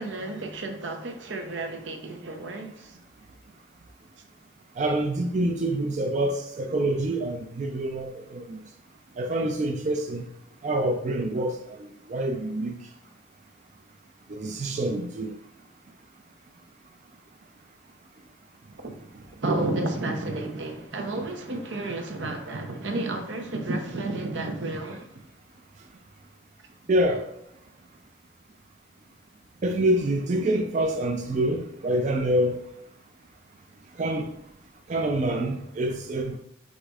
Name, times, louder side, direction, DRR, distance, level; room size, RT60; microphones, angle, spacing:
voice 1, 0.0-3.0 18.6-25.1, right 2 dB, 80° right, 0.8 m, -32 dB
voice 2, 4.8-8.6 9.2-10.3 10.6-11.6 12.1-12.7 14.3-15.4 26.9-27.2 29.6-32.6 34.0-34.3 34.9-36.4, right 1 dB, 40° right, 0.4 m, -26 dB
5.0 x 4.0 x 2.4 m
head